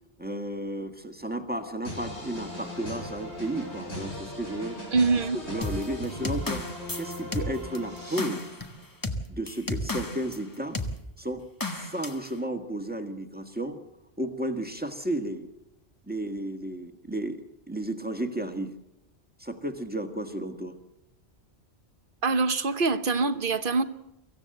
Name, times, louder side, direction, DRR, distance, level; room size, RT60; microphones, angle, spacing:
voice 1, 0.2-4.8 5.5-8.5 9.3-10.8 11.2-13.8 14.2-15.5 16.1-18.7 19.4-20.8, right 1 dB, 10° right, 1.8 m, -33 dB
sound 1, 1.8-8.8, left 1 dB, 85° left, 6.4 m, -39 dB
voice 2, 4.9-5.4 22.2-23.8, right 4 dB, 55° right, 1.1 m, -24 dB
sound 2, 5.6-10.4 10.7-11.0 11.6-12.3, left 2 dB, 20° left, 1.3 m, -33 dB
24.5 x 15.5 x 7.9 m
omnidirectional pair, 1.1 m